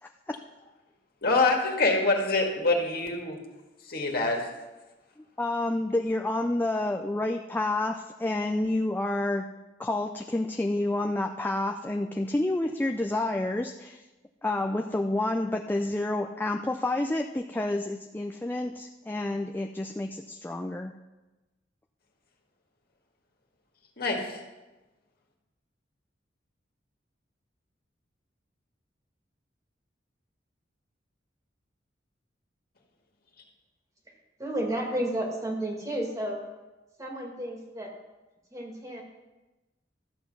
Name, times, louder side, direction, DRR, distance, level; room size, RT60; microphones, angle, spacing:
voice 1, 1.2-3.4 3.9-4.4 24.0-24.4, left 3 dB, 55° left, 1 dB, 1.9 m, -25 dB
voice 2, 5.4-9.5 9.8-14.0 14.4-21.0, left 2 dB, 10° left, 3 dB, 0.4 m, -29 dB
voice 3, 34.4-36.4 37.0-37.9 38.5-39.0, right 1 dB, 20° right, 0 dB, 1.9 m, -32 dB
13.0 x 8.1 x 5.4 m, 1.1 s
head